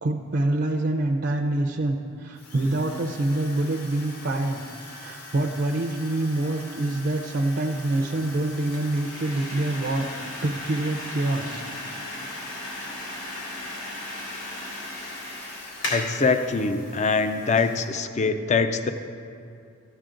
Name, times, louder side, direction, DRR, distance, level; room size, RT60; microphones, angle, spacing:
voice 1, 0.0-4.6 4.9-10.1 10.4-11.6, right 2 dB, 55° right, 2 dB, 0.5 m, -26 dB
Drill, 2.3-17.5, left 2 dB, 50° left, 1.3 m, -43 dB
sound 1, 7.8-17.8, left 1 dB, 70° left, 2.7 m, -37 dB
voice 2, 15.9-18.9, left 4 dB, 35° left, 9 dB, 0.5 m, -23 dB
13.5 x 9.0 x 3.8 m, 2.4 s
head